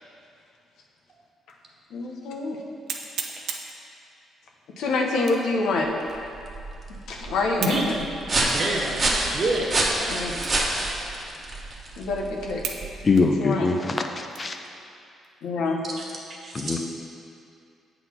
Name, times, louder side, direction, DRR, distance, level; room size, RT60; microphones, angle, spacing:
sound 1, 1.5-1.6 2.1-2.2 2.9-3.8 5.2-5.6 6.1-6.2 7.6-7.9 8.5-8.6 9.3-9.4 10.4-10.7 11.0-11.1 11.8-11.9 12.6-12.9 13.1-14.6 15.1-15.3 15.8-16.2, right 6 dB, 75° right, 0.6 m, -35 dB
voice 1, 1.9-2.6 4.8-5.9 6.9-7.9 10.1-10.4 12.0-12.6 13.4-13.7 15.4-15.8, left 3 dB, 80° left, 1 dB, 0.9 m, -26 dB
sound 2, 5.8-13.3, right 2 dB, 35° right, 1.2 m, -28 dB
voice 2, 8.4-9.8 16.4-16.8, right 2 dB, 50° right, -2 dB, 1.4 m, -27 dB
voice 3, 13.0-14.6 16.5-16.8, left 4 dB, 35° left, 4 dB, 0.5 m, -23 dB
7.7 x 4.0 x 5.8 m, 2.5 s
cardioid pair, 90°, 0 cm